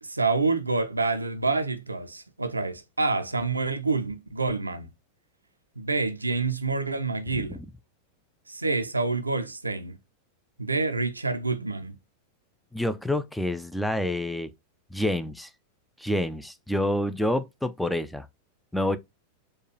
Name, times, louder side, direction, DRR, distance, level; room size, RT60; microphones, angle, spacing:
voice 1, 0.0-4.9 5.8-7.6 8.5-10.0 10.6-12.0, right 3 dB, 80° right, 0.4 m, -27 dB
voice 2, 12.7-14.5 14.9-15.5 16.0-18.3 18.7-19.0, left 1 dB, ahead, 0.3 m, -27 dB
4.4 x 2.3 x 2.9 m
figure-of-eight pair, 90°, 0 cm